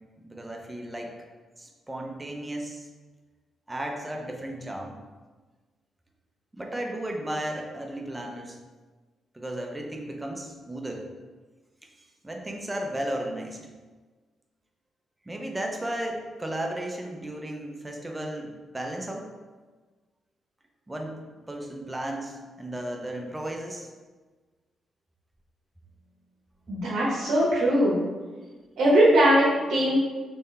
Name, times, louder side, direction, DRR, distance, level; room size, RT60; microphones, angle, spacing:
voice 1, 0.2-1.1 1.6-2.9 3.7-5.0 6.5-8.6 9.3-11.1 12.0-13.6 15.3-19.3 20.9-21.2 21.5-23.9, right 1 dB, 15° right, 1 dB, 0.6 m, -34 dB
voice 2, 26.7-28.0 28.8-30.0, equal, 75° right, -7 dB, 1.0 m, -20 dB
4.3 x 3.3 x 3.2 m, 1.3 s
cardioid pair, 90°, 0 cm